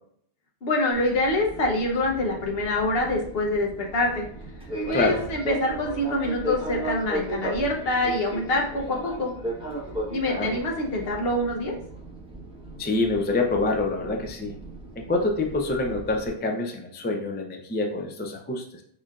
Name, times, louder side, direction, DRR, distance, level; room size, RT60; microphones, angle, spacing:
voice 1, 0.6-4.3 4.9-9.3 10.1-11.7, left 2 dB, 65° left, 0 dB, 1.1 m, -25 dB
Fixed-wing aircraft airplane, 0.9-16.3, right 1 dB, 5° right, 1.0 m, -36 dB
voice 2, 12.8-14.5 15.0-18.8, left 2 dB, 15° left, 2 dB, 0.3 m, -26 dB
5.0 x 4.2 x 2.4 m, 0.65 s
omnidirectional pair, 1.1 m